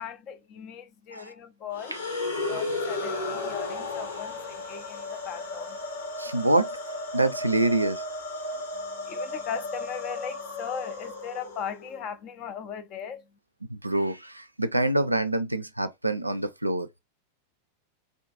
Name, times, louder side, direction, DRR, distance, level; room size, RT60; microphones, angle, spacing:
voice 1, 0.0-2.0 2.5-5.8 8.7-13.3, left 7 dB, 35° left, 0.4 m, -38 dB
sound 1, 1.7-12.0, left 2 dB, 70° left, 1.0 m, -34 dB
voice 2, 6.2-6.8 7.1-8.0 13.7-17.0, right 2 dB, 85° right, 0.3 m, -26 dB
2.5 x 2.3 x 2.3 m
figure-of-eight pair, 90°, 0 cm